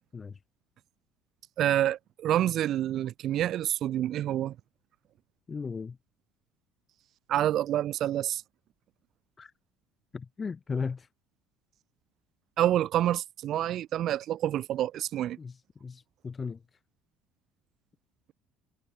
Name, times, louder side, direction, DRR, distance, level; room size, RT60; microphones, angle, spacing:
voice 1, 1.6-4.5 7.3-8.4 12.6-15.4, right 12 dB, 55° right, 2.3 m, -27 dB
voice 2, 5.5-6.0 9.4-9.5 10.1-11.1 15.4-16.6, left 5 dB, 25° left, 1.6 m, -36 dB
supercardioid pair, 100°, 0 cm